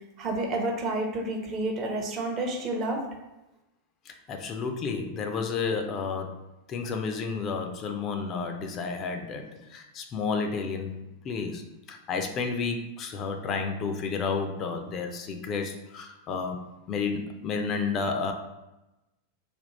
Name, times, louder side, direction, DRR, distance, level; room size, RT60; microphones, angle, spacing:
voice 1, 0.2-3.0, right 2 dB, 30° right, 1 dB, 0.7 m, -29 dB
voice 2, 4.1-6.4 6.7-11.0 11.2-11.6 11.9-16.6 16.9-18.3, left 5 dB, 30° left, 5 dB, 0.4 m, -31 dB
3.5 x 2.3 x 4.1 m, 0.98 s
figure-of-eight pair, 90°, 0 cm